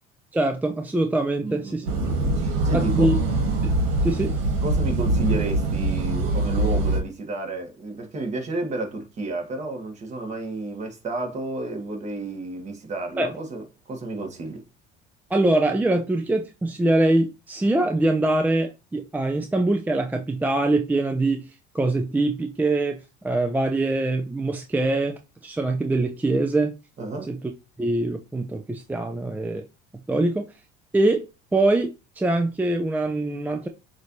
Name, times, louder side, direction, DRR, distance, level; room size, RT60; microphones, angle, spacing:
voice 1, 0.3-1.9 2.7-3.1 3.6-3.7 4.0-4.3 13.2-13.3 15.3-26.7 27.3-27.4 27.8-29.7 30.1-30.5 30.9-31.9 32.2-33.7, right 2 dB, 10° right, 0.5 m, -23 dB
voice 2, 1.4-3.1 4.6-14.6 27.0-27.3, right 2 dB, 35° right, 1.7 m, -31 dB
sound 1, 1.9-7.0, right 2 dB, 80° right, 1.4 m, -23 dB
6.1 x 2.7 x 3.1 m
supercardioid pair, 100°, 20 cm